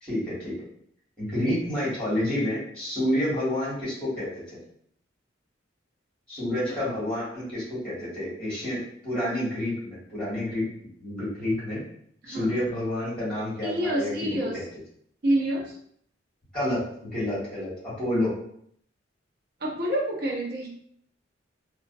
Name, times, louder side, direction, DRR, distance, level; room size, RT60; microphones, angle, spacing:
voice 1, 0.0-0.5 1.2-4.6 6.3-10.6 11.0-11.8 12.3-14.6 16.5-18.3, left 1 dB, 5° left, -9 dB, 1.2 m, -29 dB
voice 2, 13.6-14.6 15.2-15.7 19.6-20.7, right 1 dB, 55° right, -3 dB, 0.6 m, -27 dB
2.4 x 2.1 x 2.5 m, 0.65 s
head